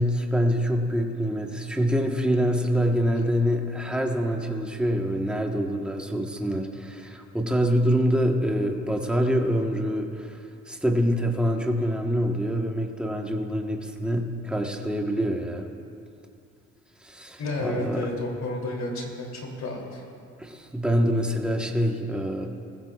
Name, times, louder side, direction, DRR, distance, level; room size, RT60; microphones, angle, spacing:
voice 1, 0.0-15.7 17.0-18.1 20.4-22.5, equal, 5° right, 2 dB, 1.3 m, -25 dB
voice 2, 17.4-20.0, left 2 dB, 65° left, 0 dB, 3.1 m, -31 dB
20.0 x 15.5 x 2.4 m, 2.5 s
cardioid pair, 90°, 30 cm